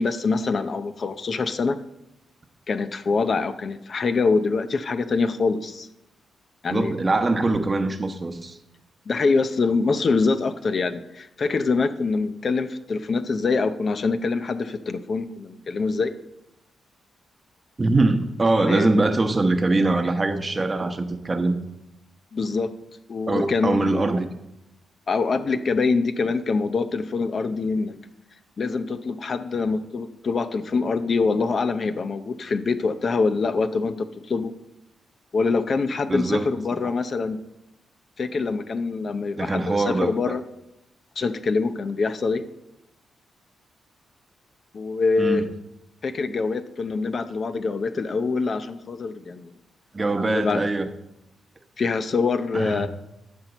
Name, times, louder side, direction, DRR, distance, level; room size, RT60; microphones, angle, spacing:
voice 1, 0.0-1.8 2.7-5.9 6.6-6.9 9.1-16.1 18.7-18.9 22.3-22.7 23.1-23.9 25.1-28.0 28.6-34.5 35.3-37.4 38.2-40.4 41.2-42.4 44.7-45.5 46.0-49.5 50.2-50.7 51.8-52.9, left 4 dB, 50° left, 0.6 m, -24 dB
voice 2, 6.7-8.6 17.8-21.6 23.3-24.3 36.1-36.5 39.4-40.3 45.2-45.4 49.9-50.9 52.5-52.9, right 2 dB, 30° right, 0.9 m, -23 dB
12.0 x 4.4 x 7.0 m
cardioid pair, 85°, 0 cm